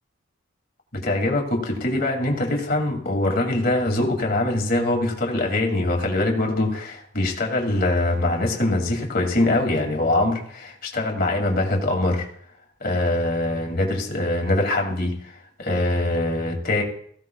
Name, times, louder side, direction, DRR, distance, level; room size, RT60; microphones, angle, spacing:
voice 1, 0.9-12.3 12.8-15.3 15.6-16.8, left 2 dB, 50° left, 2 dB, 2.3 m, -23 dB
16.5 x 15.5 x 2.3 m, 0.64 s
head